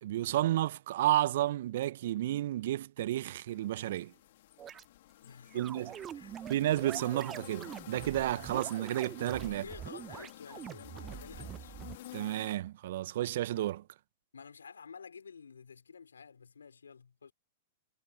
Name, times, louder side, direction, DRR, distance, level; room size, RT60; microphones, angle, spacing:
voice 1, 0.0-4.1 5.5-5.9 6.5-9.6 12.1-13.8, right 14 dB, 60° right, 1.2 m, -31 dB
sound 1, 3.5-12.6, left 15 dB, 60° left, 3.0 m, -51 dB
sound 2, 4.6-4.8 5.5-12.0, right 10 dB, 25° right, 0.6 m, -45 dB
voice 2, 5.2-6.4 9.5-11.8 14.3-17.3, left 6 dB, 80° left, 5.8 m, -51 dB
figure-of-eight pair, 105°, 0 cm